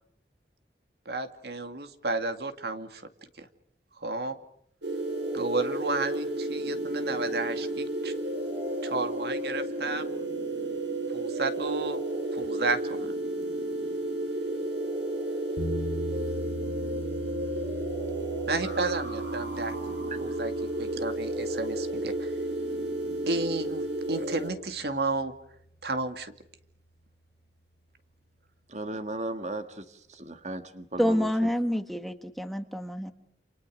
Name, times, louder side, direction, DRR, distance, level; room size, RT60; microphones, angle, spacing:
voice 1, 1.1-3.0 3.4-3.5 4.0-4.4 5.3-8.1 8.8-10.1 11.1-12.0 12.3-13.1 18.5-19.7 20.2-20.5 20.8-22.3 23.3-23.8 24.1-25.3 25.8-26.3, right 3 dB, 65° right, 9 dB, 2.3 m, -32 dB
sound 1, 4.8-24.5, right 1 dB, 85° right, 7.1 m, -32 dB
sound 2, 15.6-25.6, equal, 65° left, 2.9 m, -41 dB
voice 2, 28.7-31.3, right 2 dB, 40° right, 8 dB, 1.6 m, -36 dB
voice 3, 31.0-33.1, equal, ahead, 7 dB, 1.4 m, -28 dB
28.5 x 28.5 x 6.4 m, 0.71 s
head